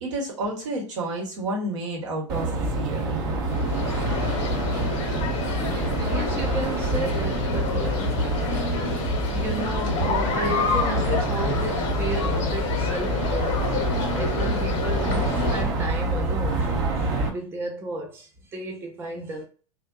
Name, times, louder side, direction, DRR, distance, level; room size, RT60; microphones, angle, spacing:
voice 1, 0.0-3.1, right 1 dB, 65° right, 1.1 m, -30 dB
sound 1, 2.3-17.3, right 2 dB, 45° right, 0.8 m, -27 dB
sound 2, 3.5-15.6, left 5 dB, 45° left, 0.8 m, -29 dB
voice 2, 6.1-8.1 9.3-13.6 14.1-19.4, right 2 dB, 15° right, 0.4 m, -33 dB
2.5 x 2.1 x 2.3 m
hypercardioid pair, 100°, 17 cm